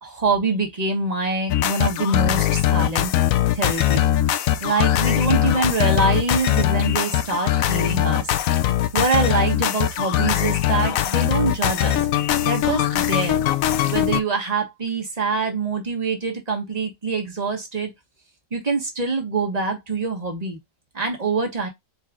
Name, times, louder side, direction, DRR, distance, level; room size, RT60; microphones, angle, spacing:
voice 1, 0.0-3.2 3.5-8.3 8.9-12.0 12.4-13.4 13.8-17.9 18.5-20.6 20.9-21.7, right 4 dB, 25° right, 1.1 m, -25 dB
sound 1, 1.5-14.2, left 12 dB, 85° left, 0.7 m, -21 dB
4.5 x 4.4 x 2.3 m
omnidirectional pair, 2.0 m